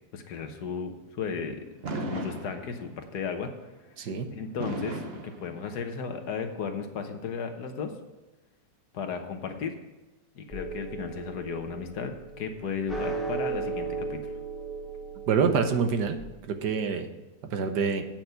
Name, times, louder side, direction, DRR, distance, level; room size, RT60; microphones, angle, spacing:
voice 1, 0.1-1.6 2.0-3.5 4.3-7.9 8.9-9.7 10.3-14.2, left 6 dB, 70° left, 6 dB, 1.6 m, -34 dB
Fireworks, 1.8-3.1 4.6-6.1, right 2 dB, 40° right, 1.1 m, -36 dB
sound 1, 10.5-16.2, right 4 dB, ahead, 1.3 m, -36 dB
voice 2, 15.3-16.2 16.5-17.1 17.5-18.0, right 6 dB, 75° right, 7 dB, 1.5 m, -26 dB
8.9 x 6.0 x 8.0 m, 1.1 s
omnidirectional pair, 1.8 m